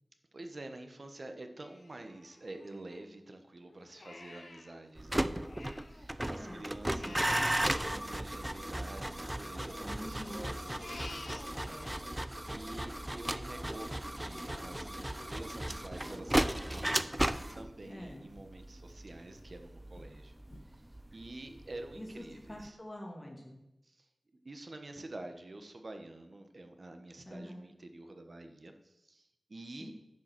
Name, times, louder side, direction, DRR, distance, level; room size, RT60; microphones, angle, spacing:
voice 1, 0.3-7.3 7.6-10.8 11.6-17.1 17.5-20.3 20.6-20.8 21.1-22.8 23.8-29.9, right 2 dB, 50° right, 6 dB, 1.2 m, -48 dB
Crying sobbing, 1.6-3.3 3.7-6.1 6.4-8.8 9.2-12.1 12.4-17.9 18.3-18.5 18.9-19.4 19.9-20.0 20.5-20.6, left 2 dB, 70° left, 1.4 m, -53 dB
sound 1, 5.0-22.0 22.2-22.7, right 1 dB, 15° right, 0.5 m, -36 dB
voice 2, 6.3-7.1 9.8-10.3 10.8-11.2 11.6-12.0 17.9-18.3 21.9-23.6 27.3-27.6 29.8-29.9, equal, 20° left, 0 dB, 2.0 m, -46 dB
10.5 x 5.5 x 7.4 m, 0.88 s
wide cardioid pair, 90°, 0 cm